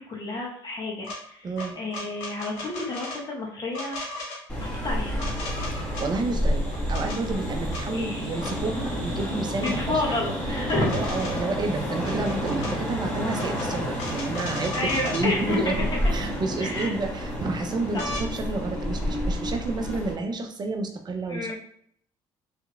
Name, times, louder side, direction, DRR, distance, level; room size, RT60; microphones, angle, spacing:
voice 1, 0.0-1.5 1.8-4.0 4.6-5.2 8.0-8.2 9.6-11.2 14.7-15.9 16.6-16.9 17.9-18.2 21.3-21.5, left 2 dB, 40° left, -1 dB, 1.1 m, -30 dB
sound 1, 1.0-1.2 1.6-3.2 3.7-4.4 5.2-6.1 6.7-7.2 7.7-7.8 8.4-8.6 9.6-9.7 10.6-11.5 12.0-12.7 13.3-15.3 16.3-16.4 16.7-17.3 18.0-18.3 19.8-19.9, left 2 dB, 85° left, 1.1 m, -36 dB
voice 2, 1.4-1.8 5.8-10.2 10.5-10.6 10.9-21.5, right 3 dB, 40° right, 4 dB, 0.6 m, -30 dB
sound 2, 4.5-20.1, equal, 10° left, 1.5 m, -30 dB
3.3 x 2.9 x 2.4 m, 0.66 s
supercardioid pair, 70°, 11 cm